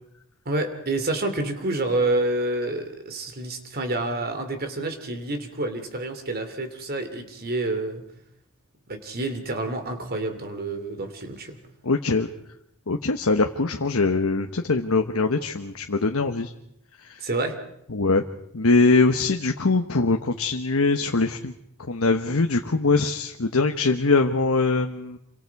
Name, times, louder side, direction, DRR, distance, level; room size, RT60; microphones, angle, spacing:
voice 1, 0.4-8.0 8.9-11.6 17.2-17.6, right 2 dB, 45° right, 7 dB, 2.9 m, -28 dB
voice 2, 11.8-12.3 12.9-16.5 17.9-18.2 18.5-21.5 21.9-25.2, left 3 dB, 70° left, 5 dB, 1.1 m, -22 dB
28.0 x 24.5 x 4.8 m, 0.76 s
head